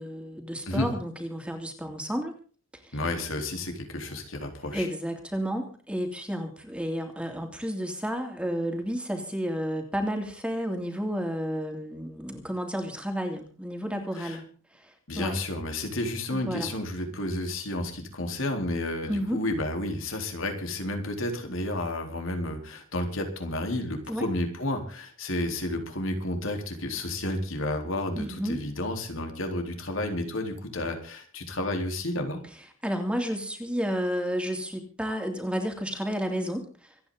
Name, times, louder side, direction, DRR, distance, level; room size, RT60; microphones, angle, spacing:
voice 1, 0.0-2.3 2.8-3.0 4.7-14.4 14.7-15.3 16.3-16.7 19.1-19.4 24.1-24.2 28.2-28.6 32.8-37.1, equal, 5° right, 4 dB, 2.9 m, -31 dB
voice 2, 2.9-4.9 14.1-14.4 15.1-32.4, left 1 dB, 70° left, 4 dB, 4.0 m, -31 dB
26.5 x 9.6 x 4.0 m, 0.40 s
head